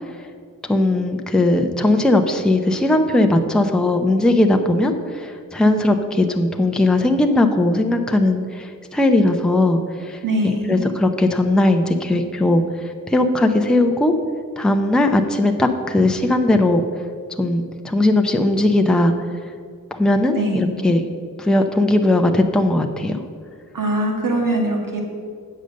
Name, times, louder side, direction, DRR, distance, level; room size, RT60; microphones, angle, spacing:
voice 1, 0.7-12.6 13.1-14.1 14.6-16.8 17.4-19.1 19.9-21.0 21.4-23.2, left 2 dB, ahead, 5 dB, 0.6 m, -18 dB
voice 2, 10.2-10.9 20.3-20.7 23.7-25.0, right 1 dB, 65° right, 1 dB, 1.8 m, -22 dB
8.2 x 6.6 x 6.4 m, 2.2 s
wide cardioid pair, 110°, 35 cm